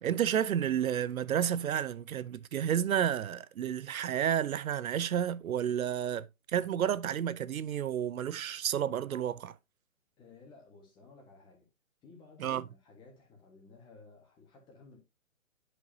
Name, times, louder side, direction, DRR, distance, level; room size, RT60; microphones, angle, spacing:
voice 1, 0.0-9.6 12.4-12.6, right 9 dB, 80° right, 0.6 m, -31 dB
voice 2, 10.2-11.7 12.0-15.0, left 3 dB, 10° left, 1.4 m, -56 dB
9.5 x 5.3 x 2.7 m
hypercardioid pair, 155°, 42 cm